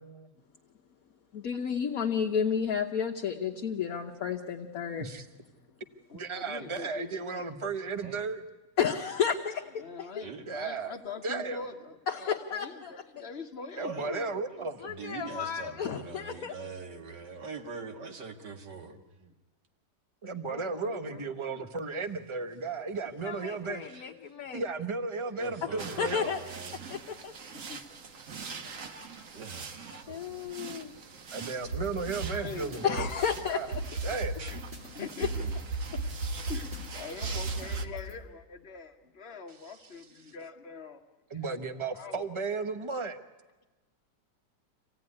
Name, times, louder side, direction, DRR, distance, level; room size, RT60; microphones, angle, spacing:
voice 1, 0.0-0.3 3.1-3.2 4.8-5.3 6.1-8.4 10.5-10.9 11.2-11.6 13.8-14.8 20.2-23.8 24.5-26.3 31.3-33.1 33.5-33.7 34.0-34.4 39.6-39.8 41.3-43.2, right 4 dB, 25° right, 9 dB, 0.8 m, -35 dB
voice 2, 1.3-5.0 8.8-10.2 12.1-13.2 14.8-16.5 23.2-24.6 25.6-26.4 26.9-27.3 30.1-30.9 32.8-33.8, left 7 dB, 55° left, 3 dB, 1.3 m, -32 dB
voice 3, 6.1-7.4 9.8-14.3 20.2-21.7 27.5-27.8 32.3-32.9 34.9-35.5 36.5-41.0 41.4-42.2, left 4 dB, 40° left, 4 dB, 1.5 m, -44 dB
voice 4, 14.5-19.0 23.8-24.1 25.3-26.8 29.3-30.5 33.9-34.1 34.4-34.6, right 4 dB, 70° right, 6 dB, 2.3 m, -43 dB
sound 1, 25.8-37.9, right 5 dB, 50° right, 1.5 m, -44 dB
sound 2, 31.6-38.1, right 2 dB, 85° right, 4.2 m, -36 dB
26.0 x 16.5 x 9.7 m, 1.2 s
omnidirectional pair, 1.9 m